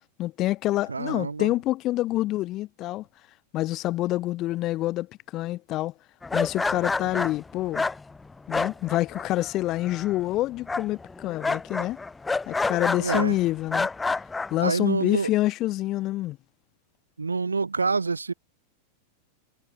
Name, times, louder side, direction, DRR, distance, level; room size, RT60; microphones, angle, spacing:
voice 1, 0.2-3.0 3.5-5.1 5.3-5.9 6.3-7.8 8.5-12.0 12.5-13.9 14.5-16.4, left 16 dB, 35° left, 0.9 m, -27 dB
voice 2, 0.9-1.5 13.0-13.4 14.6-15.3 17.2-18.3, right 4 dB, 75° right, 1.7 m, -27 dB
sound 1, 6.2-9.5 9.8-10.3 10.7-13.3 13.7-14.5, left 3 dB, 10° left, 1.7 m, -28 dB
figure-of-eight pair, 90°, 0 cm